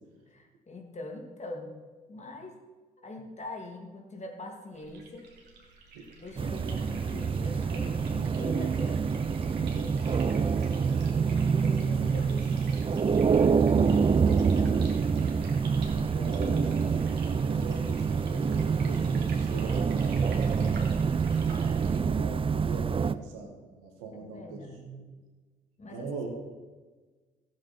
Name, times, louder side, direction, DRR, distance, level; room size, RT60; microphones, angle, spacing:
voice 1, 0.3-1.7 2.1-2.6 3.0-5.3 6.2-10.0 10.4-13.1 14.1-15.1 24.2-25.0 25.8-26.1, left 2 dB, 35° left, 2 dB, 2.4 m, -43 dB
sound 1, 4.7-22.0, right 3 dB, 55° right, 2.6 m, -49 dB
sound 2, 6.4-23.1, right 5 dB, 25° right, 0.5 m, -26 dB
voice 2, 15.9-16.9 17.4-20.9 21.9-24.6 25.9-26.3, right 4 dB, 75° right, 2 dB, 1.9 m, -42 dB
14.5 x 8.3 x 4.4 m, 1.3 s
figure-of-eight pair, 45°, 21 cm